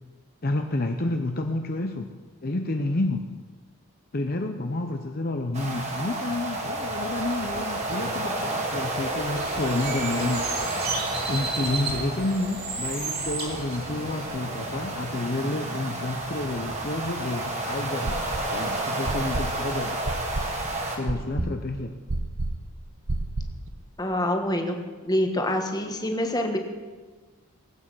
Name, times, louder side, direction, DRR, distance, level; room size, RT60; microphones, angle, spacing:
voice 1, 0.4-2.1 2.4-3.3 4.1-10.5 11.3-20.0 21.0-22.0, left 2 dB, 40° left, 4 dB, 0.7 m, -29 dB
sound 1, 5.5-21.0, right 2 dB, 30° right, 1.9 m, -31 dB
Bird, 9.3-14.3, right 4 dB, 45° right, 3.0 m, -33 dB
sound 2, 18.1-18.6 19.1-23.7, right 2 dB, 70° right, 1.1 m, -30 dB
voice 2, 24.0-24.8 25.0-26.6, left 1 dB, 15° left, 4 dB, 1.3 m, -26 dB
18.0 x 9.0 x 6.2 m, 1.4 s
head